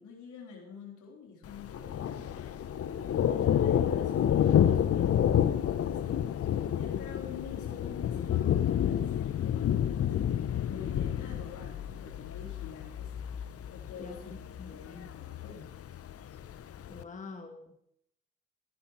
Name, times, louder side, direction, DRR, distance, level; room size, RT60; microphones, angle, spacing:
voice 1, 0.0-2.3 3.0-6.1 6.6-10.2 10.6-13.1 13.7-15.7, left 5 dB, 65° left, -1 dB, 3.7 m, -47 dB
Thunder, 1.5-17.0, left 10 dB, 45° left, 0.7 m, -29 dB
voice 2, 14.0-15.1 16.9-17.8, left 4 dB, 25° left, 4 dB, 1.3 m, -46 dB
15.0 x 11.0 x 3.1 m, 0.76 s
supercardioid pair, 65°, 32 cm